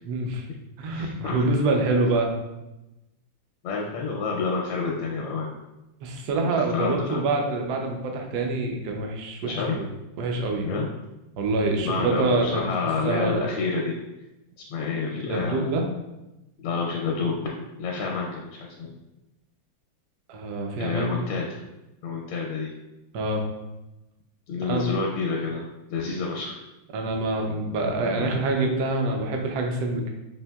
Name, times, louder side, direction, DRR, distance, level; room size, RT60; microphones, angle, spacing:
voice 1, 0.1-0.4 0.8-2.3 6.0-9.9 10.2-10.7 11.4-13.5 15.3-15.8 20.3-21.3 23.1-23.4 24.6-24.9 26.9-30.1, right 2 dB, 75° right, 2 dB, 0.9 m, -26 dB
voice 2, 0.9-1.4 3.6-5.5 6.5-7.2 9.4-9.8 10.6-10.9 11.8-14.0 14.7-15.8 16.6-17.4 17.8-18.9 20.8-21.6 22.0-22.7 24.5-25.6 25.9-26.6 28.2-28.3, left 4 dB, 80° left, -1 dB, 1.4 m, -29 dB
5.6 x 2.7 x 2.2 m, 0.97 s
omnidirectional pair, 2.3 m